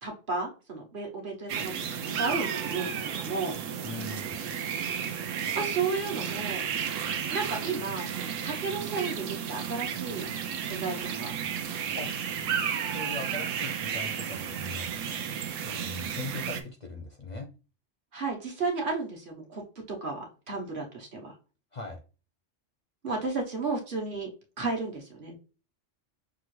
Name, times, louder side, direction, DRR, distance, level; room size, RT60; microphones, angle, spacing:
voice 1, 0.0-3.6 5.6-6.6 7.3-10.3 10.6-11.3 18.1-19.6 19.9-21.3 23.0-24.3 24.6-25.3, right 4 dB, 45° right, 0 dB, 1.1 m, -33 dB
sound 1, 1.5-16.6, right 8 dB, 90° right, 1.0 m, -33 dB
voice 2, 3.8-4.4 12.0-12.1 12.9-14.9 15.6-17.5 21.7-22.0, left 3 dB, 50° left, 3 dB, 0.6 m, -40 dB
5.9 x 2.4 x 3.1 m, 0.34 s
omnidirectional pair, 1.3 m